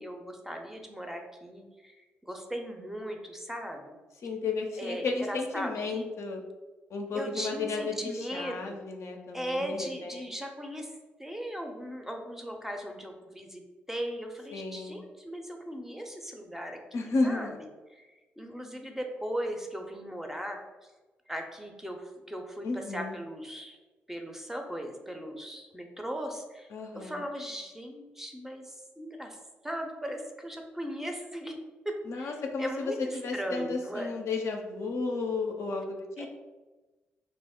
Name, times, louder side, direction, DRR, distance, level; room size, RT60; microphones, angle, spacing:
voice 1, 0.0-4.0 4.8-6.1 7.1-8.8 9.3-10.9 11.2-13.6 13.9-17.5 17.9-20.6 21.3-23.8 24.1-26.7 26.9-29.4 29.6-31.6 31.8-32.3 32.6-34.1 36.2-36.3, equal, 5° right, 3 dB, 0.5 m, -38 dB
voice 2, 4.2-6.4 6.9-10.3 14.5-15.0 16.9-17.6 22.6-23.2 26.7-27.2 32.1-36.3, left 3 dB, 60° left, 2 dB, 0.4 m, -33 dB
2.4 x 2.0 x 3.5 m, 1.2 s
hypercardioid pair, 40°, 5 cm